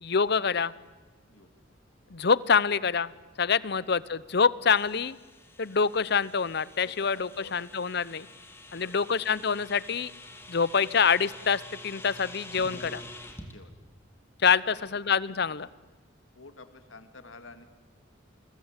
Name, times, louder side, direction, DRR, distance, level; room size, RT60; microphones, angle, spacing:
voice 1, 0.0-0.7 2.1-3.1 3.4-5.2 5.6-8.3 8.7-10.1 10.5-13.0 14.4-15.7, left 6 dB, 55° left, 19 dB, 0.8 m, -26 dB
sound 1, 4.8-13.5, left 2 dB, 15° left, 2.8 m, -47 dB
voice 2, 6.8-7.7 8.7-9.0 13.5-13.7 14.6-14.7 16.3-17.6, left 3 dB, 85° left, 9 dB, 2.4 m, -50 dB
29.0 x 22.5 x 8.2 m, 1.3 s
head